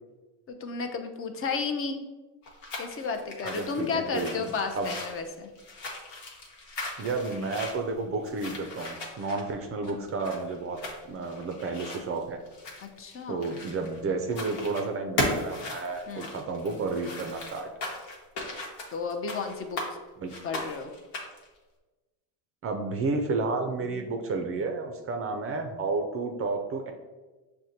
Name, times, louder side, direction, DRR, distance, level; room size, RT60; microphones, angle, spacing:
voice 1, 0.5-2.0 2.8-5.5 12.8-13.5 16.1-16.3 18.9-19.8 20.4-20.9, left 5 dB, 35° left, 6 dB, 0.5 m, -33 dB
sound 1, 2.4-14.0 14.3-14.9 15.2-19.9 20.3-21.5, left 2 dB, 75° left, 1.0 m, -37 dB
voice 2, 3.4-5.0 7.0-10.8 11.1-12.4 13.3-17.7 20.2-20.3 22.6-26.9, right 3 dB, 35° right, 4 dB, 0.4 m, -31 dB
6.2 x 2.2 x 2.8 m, 1.2 s
cardioid pair, 110°, 42 cm